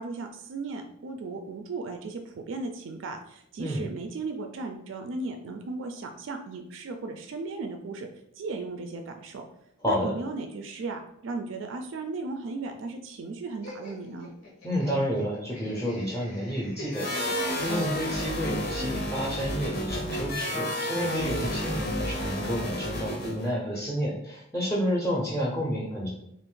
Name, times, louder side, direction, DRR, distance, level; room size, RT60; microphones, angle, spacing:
voice 1, 0.0-8.1 8.4-9.4 9.8-14.3, right 3 dB, 65° right, 5 dB, 0.3 m, -36 dB
Laughter, 13.6-17.9, left 1 dB, 85° left, 1.0 m, -45 dB
voice 2, 14.6-26.1, equal, 10° left, -4 dB, 0.5 m, -30 dB
sound 1, 16.9-23.5, equal, 50° left, 0.6 m, -31 dB
2.5 x 2.4 x 3.7 m, 0.76 s
head